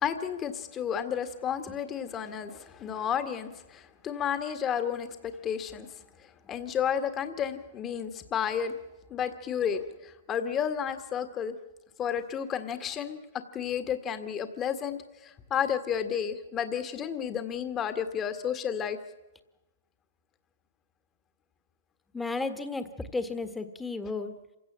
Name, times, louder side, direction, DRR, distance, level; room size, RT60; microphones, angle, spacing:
voice 1, 0.0-5.9 6.5-8.8 9.1-11.6 12.0-19.0, left 8 dB, 25° left, 9 dB, 1.7 m, -32 dB
voice 2, 22.1-24.3, left 3 dB, 5° left, 10 dB, 1.6 m, -33 dB
26.5 x 16.5 x 7.5 m, 1.0 s
hypercardioid pair, 135°, 0 cm